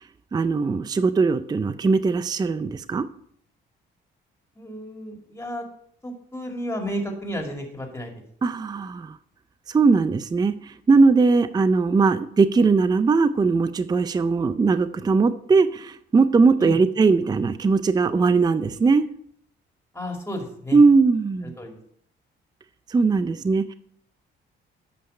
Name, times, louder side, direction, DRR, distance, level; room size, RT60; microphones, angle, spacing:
voice 1, 0.3-3.1 8.4-9.2 9.7-19.1 20.7-21.5 22.9-23.7, right 4 dB, 20° right, 13 dB, 0.4 m, -20 dB
voice 2, 4.6-5.6 6.0-8.1 16.6-16.8 19.9-20.8 21.6-21.8, equal, 10° left, 2 dB, 2.3 m, -32 dB
8.6 x 5.6 x 5.5 m, 0.66 s
cardioid pair, 90°, 20 cm